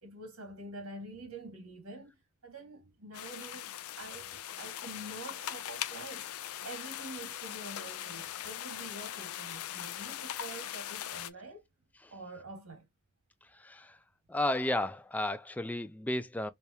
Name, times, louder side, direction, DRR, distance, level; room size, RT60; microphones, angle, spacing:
voice 1, 0.0-2.2 2.4-6.3 6.6-11.6 12.1-12.9, right 2 dB, 80° right, 1.9 m, -46 dB
sound 1, 3.1-11.3, left 11 dB, 80° left, 0.4 m, -40 dB
voice 2, 13.4-14.0 14.3-16.5, left 1 dB, 5° left, 0.3 m, -33 dB
3.4 x 3.3 x 2.8 m
head